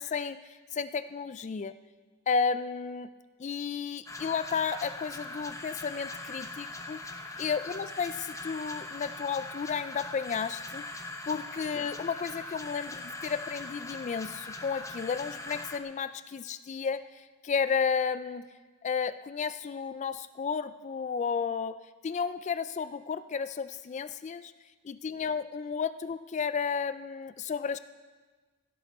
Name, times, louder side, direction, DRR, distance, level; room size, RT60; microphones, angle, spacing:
voice 1, 0.0-1.7 2.3-3.1 3.4-7.0 7.4-10.8 11.3-18.5 18.8-24.5 24.8-27.8, left 6 dB, 35° left, 13 dB, 0.3 m, -32 dB
sound 1, 4.1-15.8, left 2 dB, 15° left, 0.9 m, -41 dB
16.5 x 12.5 x 4.2 m, 1.4 s
head